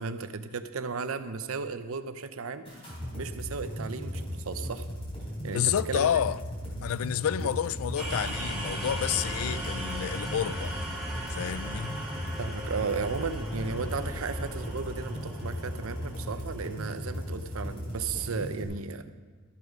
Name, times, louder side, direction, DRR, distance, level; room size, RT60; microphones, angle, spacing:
voice 1, 0.0-2.9 3.1-4.9 5.4-6.1 6.8-6.9 7.4-7.5 12.4-19.1, right 5 dB, 75° right, 0.7 m, -35 dB
sound 1, 2.6-18.6, equal, 25° left, 3.9 m, -37 dB
voice 2, 5.5-6.4 6.8-10.7 11.3-12.0, left 9 dB, 75° left, 0.3 m, -29 dB
sound 2, 8.0-17.7, right 1 dB, 5° right, 2.3 m, -38 dB
13.0 x 8.0 x 5.3 m
head